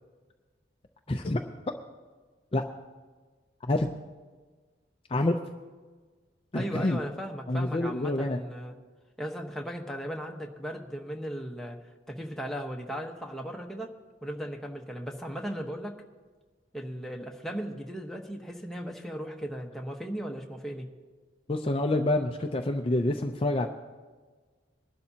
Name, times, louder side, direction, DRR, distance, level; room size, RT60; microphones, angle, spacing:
voice 1, 1.1-1.4 2.5-2.6 3.7-3.9 5.1-5.4 6.5-7.0 7.5-8.4 21.5-23.7, left 1 dB, 30° left, 4 dB, 0.6 m, -27 dB
voice 2, 6.5-8.7 9.2-11.8 12.1-13.9 14.2-15.9 16.7-20.9, equal, ahead, 0 dB, 1.1 m, -37 dB
22.5 x 12.0 x 2.9 m, 1.4 s
head